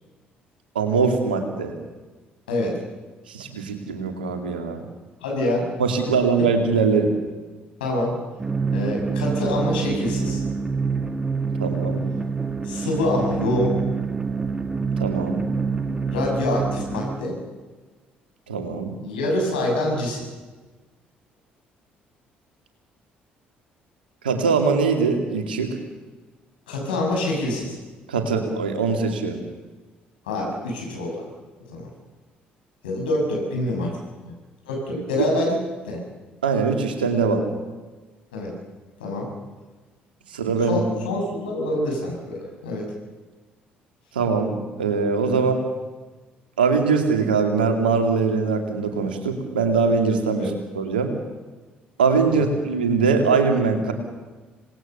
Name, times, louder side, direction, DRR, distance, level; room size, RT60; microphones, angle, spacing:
voice 1, 0.7-1.7 3.3-4.8 5.8-7.1 11.6-12.0 15.0-15.5 18.5-18.9 24.2-25.7 28.1-29.4 35.2-35.3 36.4-37.4 40.3-40.8 44.1-45.6 46.6-51.1 52.0-53.9, right 5 dB, 80° right, 5 dB, 2.5 m, -22 dB
voice 2, 2.5-2.8 5.2-5.7 6.4-6.5 7.8-8.1 8.7-10.4 12.6-13.8 16.1-17.4 19.0-20.2 26.7-27.8 30.3-31.3 31.7-31.9 32.8-33.9 34.2-34.3 34.6-35.6 35.8-36.0 38.3-38.5 39.0-39.3 40.7-42.9 45.4-45.5 50.4-50.6 52.3-52.5, left 1 dB, 75° left, 0 dB, 7.2 m, -26 dB
sound 1, 8.4-17.2, right 5 dB, 15° right, 1.7 m, -26 dB
26.5 x 19.5 x 6.9 m, 1.3 s
figure-of-eight pair, 50°, 5 cm